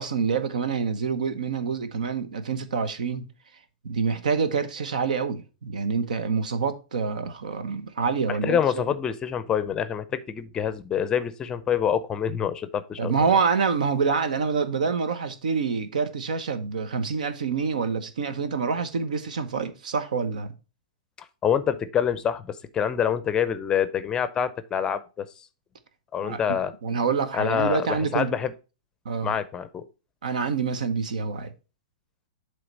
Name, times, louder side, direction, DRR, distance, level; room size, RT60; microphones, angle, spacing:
voice 1, 0.0-3.3 3.8-8.8 13.0-20.5 26.2-26.4 26.8-28.4 29.0-29.3 30.2-31.5, right 5 dB, 80° right, 1.0 m, -26 dB
voice 2, 8.3-13.3 21.2-25.3 26.1-26.7 27.3-27.9 28.1-28.5 29.2-29.9, left 8 dB, 20° left, 0.5 m, -26 dB
7.7 x 3.3 x 5.2 m
hypercardioid pair, 140°, 4 cm